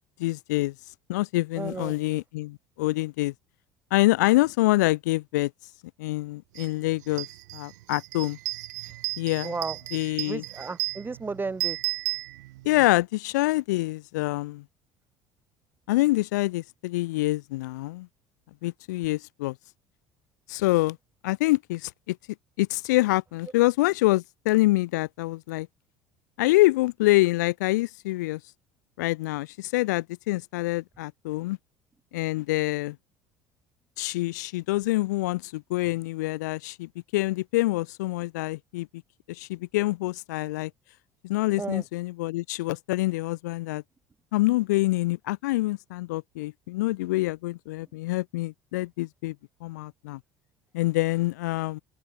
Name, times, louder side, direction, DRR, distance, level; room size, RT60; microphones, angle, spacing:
voice 1, 0.2-0.7 1.1-3.3 3.9-5.5 6.0-7.3 7.5-8.4 9.2-9.5 9.9-10.4 12.6-14.6 15.9-18.1 18.6-19.5 20.5-21.0 21.2-22.2 22.6-25.7 26.4-28.4 29.0-31.6 32.1-32.9 34.0-38.9 39.3-40.7 41.2-43.8 44.3-49.3 49.6-50.2 50.7-51.8, left 19 dB, 85° left, 1.6 m, -26 dB
voice 2, 1.6-1.9 9.4-9.8 10.2-11.8 41.6-41.8, right 4 dB, 20° right, 5.6 m, -33 dB
sound 1, 6.6-6.7 7.0-12.9, right 18 dB, 85° right, 7.5 m, -34 dB
open air
hypercardioid pair, 75°, 9 cm